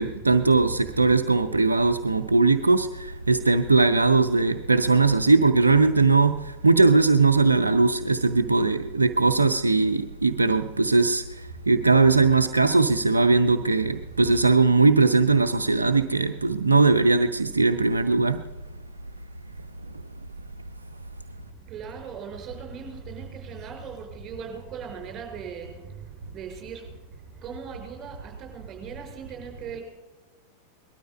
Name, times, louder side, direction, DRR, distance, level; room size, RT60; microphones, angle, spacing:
voice 1, 0.0-18.4, right 3 dB, 80° right, 8 dB, 0.5 m, -20 dB
voice 2, 21.4-29.8, right 6 dB, 30° right, 3 dB, 4.5 m, -39 dB
19.5 x 12.5 x 5.3 m, 1.3 s
figure-of-eight pair, 90°, 0 cm